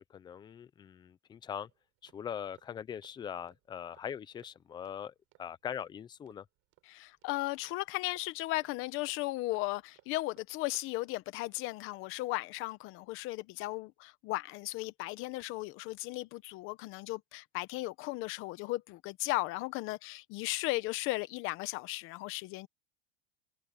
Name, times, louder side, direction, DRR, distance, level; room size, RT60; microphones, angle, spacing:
voice 1, 0.0-1.7 2.0-5.1 5.4-6.5, left 8 dB, 15° left, 0.6 m, -41 dB
sound 1, 1.7-12.0 12.3-12.6, right 19 dB, 45° right, 7.1 m, -69 dB
voice 2, 6.9-22.7, left 19 dB, 45° left, 0.9 m, -36 dB
supercardioid pair, 160°, 30 cm